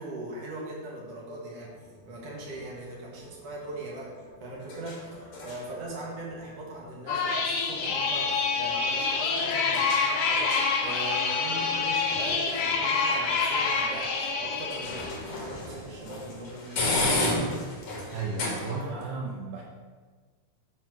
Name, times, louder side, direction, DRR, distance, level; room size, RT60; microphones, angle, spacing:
voice 1, 0.0-4.1 4.4-17.6 19.2-19.5, right 2 dB, 65° right, -4 dB, 1.6 m, -40 dB
sound 1, 1.6-19.0, left 2 dB, 55° left, 2.2 m, -36 dB
sound 2, 7.1-15.1, left 4 dB, 80° left, 1.7 m, -27 dB
voice 2, 18.1-19.6, right 4 dB, 90° right, -2 dB, 2.9 m, -34 dB
7.6 x 3.8 x 5.8 m, 1.5 s
omnidirectional pair, 4.8 m